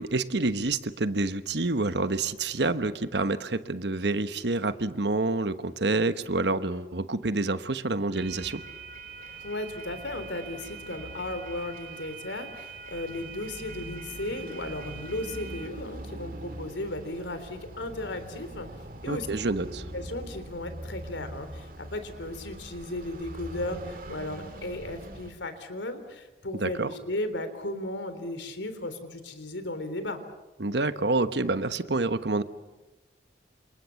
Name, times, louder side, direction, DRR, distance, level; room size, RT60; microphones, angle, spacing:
voice 1, 0.0-8.6 19.1-19.9 26.6-26.9 30.6-32.4, right 2 dB, 70° right, 11 dB, 1.2 m, -28 dB
sound 1, 8.1-25.3, right 2 dB, 50° right, 2.4 m, -42 dB
voice 2, 9.4-18.7 19.0-19.3 19.9-30.2, left 1 dB, 85° left, 10 dB, 3.6 m, -35 dB
29.0 x 27.0 x 7.2 m, 1.1 s
head